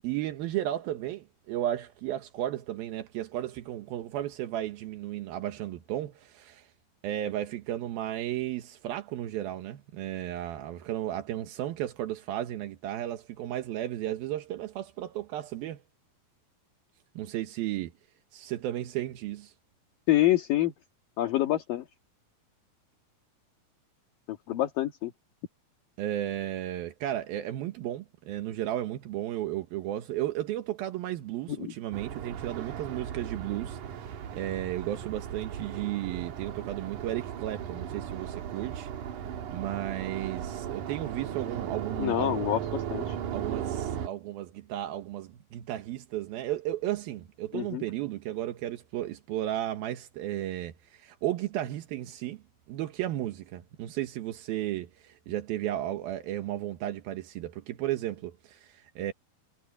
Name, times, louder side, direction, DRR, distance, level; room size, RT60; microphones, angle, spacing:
voice 1, 0.0-6.7 7.0-15.8 17.2-17.9 18.3-19.5 26.0-38.9 39.5-42.4 43.3-52.4 52.7-59.1, right 13 dB, 85° right, 3.1 m, -34 dB
voice 2, 20.1-20.7 21.2-21.9 24.5-25.1 31.6-31.7 42.0-43.2 47.5-47.8, left 14 dB, 70° left, 3.3 m, -26 dB
sound 1, 31.9-44.1, right 9 dB, 65° right, 2.8 m, -36 dB
omnidirectional pair, 4.2 m